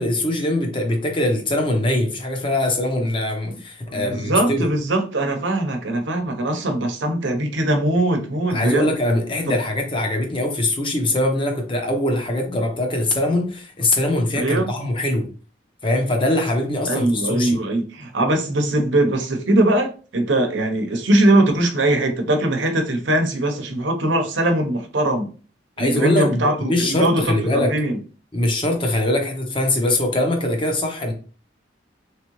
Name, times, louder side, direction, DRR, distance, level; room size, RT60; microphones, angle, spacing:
voice 1, 0.0-4.7 8.5-15.3 15.8-17.6 25.8-27.7 28.3-31.1, left 1 dB, 25° left, 0.7 m, -22 dB
voice 2, 3.9-8.9 14.4-14.7 16.9-25.3 25.8-28.0, right 1 dB, 85° right, 0.8 m, -21 dB
3.6 x 3.2 x 3.0 m
head